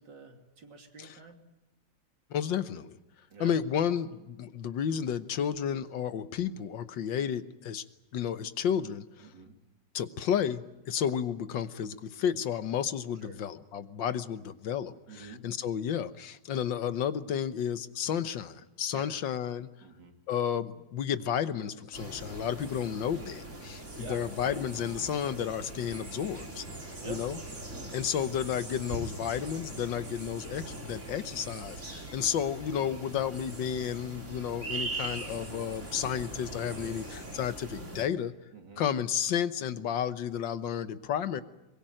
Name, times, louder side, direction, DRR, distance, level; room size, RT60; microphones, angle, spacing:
voice 1, 0.0-1.4 3.3-3.6 9.2-9.6 13.2-13.4 15.1-15.4 18.9-19.1 19.8-20.1 24.0-24.2 27.0-27.2 36.7-37.1 38.5-38.9, right 5 dB, 70° right, 5 dB, 3.3 m, -47 dB
voice 2, 2.3-3.0 3.4-7.8 8.1-9.3 9.9-19.7 20.3-26.7 27.1-27.4 27.9-38.3 38.8-41.4, left 8 dB, 75° left, 12 dB, 1.8 m, -32 dB
sound 1, 21.9-38.0, right 2 dB, 40° right, 4.5 m, -41 dB
23.5 x 22.0 x 8.9 m, 1.0 s
omnidirectional pair, 2.0 m